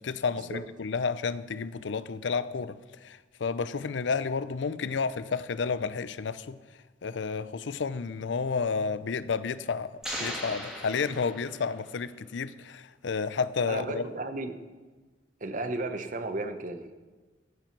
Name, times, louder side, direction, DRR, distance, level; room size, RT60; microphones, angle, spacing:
voice 1, 0.0-6.6 7.0-14.0, left 5 dB, 80° left, 0.5 m, -31 dB
sound 1, 10.0-11.9, equal, 5° right, 2.3 m, -38 dB
voice 2, 13.7-14.6 15.4-16.9, right 2 dB, 45° right, 0.9 m, -34 dB
14.0 x 7.6 x 5.9 m
head